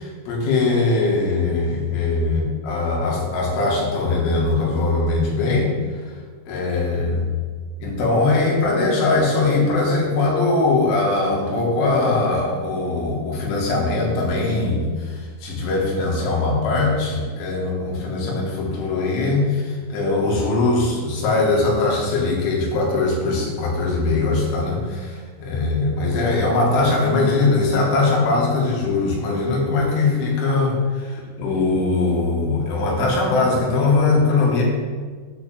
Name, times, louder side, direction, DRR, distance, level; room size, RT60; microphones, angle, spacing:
voice 1, 0.0-5.7 6.5-7.2 7.8-34.6, left 3 dB, 85° left, -3 dB, 4.3 m, -21 dB
7.8 x 4.8 x 7.3 m, 1.6 s
omnidirectional pair, 5.3 m